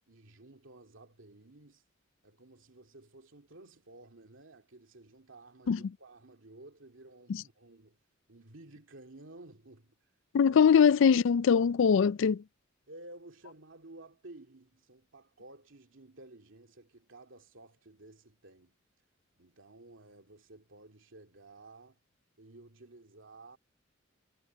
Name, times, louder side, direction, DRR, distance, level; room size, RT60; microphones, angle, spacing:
voice 1, 0.1-1.8 2.2-8.0 8.3-10.0 10.4-10.6 12.9-18.7 19.4-22.0 22.4-23.6, right 2 dB, 70° right, 2.6 m, -54 dB
voice 2, 10.3-12.4, left 7 dB, 65° left, 0.4 m, -22 dB
head